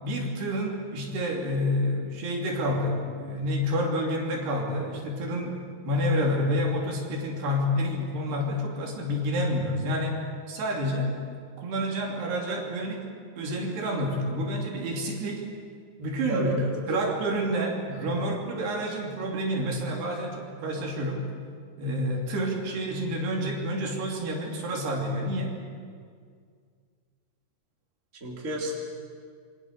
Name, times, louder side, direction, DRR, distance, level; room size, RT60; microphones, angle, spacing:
voice 1, 0.0-10.2 10.5-11.2 11.6-13.1 13.4-15.5 16.0-16.5 16.9-21.2 21.8-25.6, equal, 80° right, -1 dB, 5.2 m, -29 dB
voice 2, 16.3-17.1 28.2-28.7, right 1 dB, 20° right, -2 dB, 3.6 m, -30 dB
27.5 x 23.5 x 6.7 m, 2.1 s
omnidirectional pair, 4.7 m